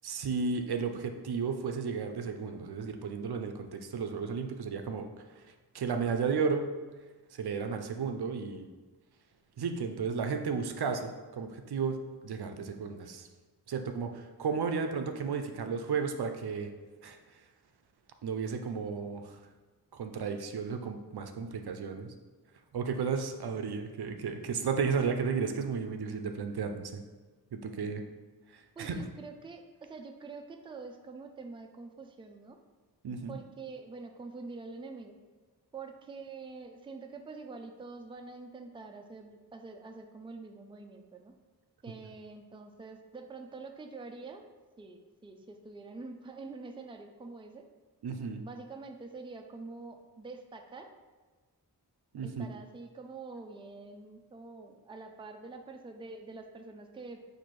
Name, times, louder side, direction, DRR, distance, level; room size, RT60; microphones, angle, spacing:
voice 1, 0.0-6.7 7.3-8.7 9.6-12.0 12.2-13.3 13.7-16.7 17.0-17.2 18.2-19.4 19.9-22.1 22.7-27.0 27.5-28.0 28.5-29.0 33.0-33.4 48.0-48.4 52.1-52.5, right 5 dB, 75° right, 6 dB, 0.5 m, -33 dB
voice 2, 28.8-32.6 33.3-35.2 35.7-41.3 41.8-44.5 44.8-47.6 48.4-50.9 52.2-57.3, right 3 dB, 15° right, 4 dB, 0.4 m, -46 dB
4.2 x 2.6 x 4.6 m, 1.3 s
wide cardioid pair, 60°, 39 cm